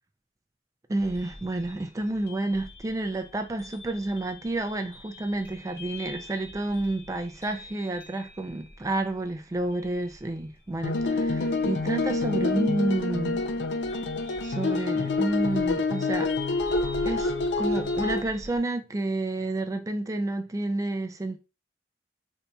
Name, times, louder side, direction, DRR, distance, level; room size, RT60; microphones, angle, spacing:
voice 1, 0.9-13.5 14.4-16.3 17.0-21.4, right 2 dB, 15° right, 0.3 m, -30 dB
sound 1, 1.0-18.6, left 2 dB, 10° left, 0.9 m, -46 dB
sound 2, 10.8-18.2, left 3 dB, 70° left, 0.4 m, -27 dB
4.2 x 2.6 x 2.2 m
head